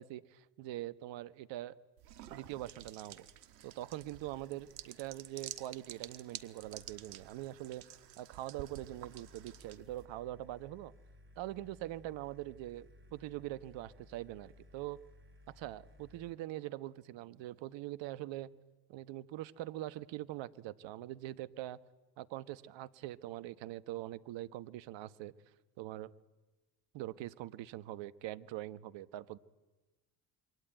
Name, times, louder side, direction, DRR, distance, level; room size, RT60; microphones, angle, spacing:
voice 1, 0.0-1.7 2.3-3.3 3.6-7.8 8.2-10.9 11.4-15.0 15.5-18.5 18.9-21.8 22.2-25.3 25.8-26.1 26.9-29.4, right 15 dB, 60° right, 16 dB, 1.2 m, -43 dB
sound 1, 2.0-10.1, right 11 dB, 90° right, 1.4 m, -51 dB
sound 2, 8.7-16.3, left 1 dB, 25° right, 5.9 m, -59 dB
27.5 x 23.5 x 9.2 m, 1.1 s
hypercardioid pair, 70°, 49 cm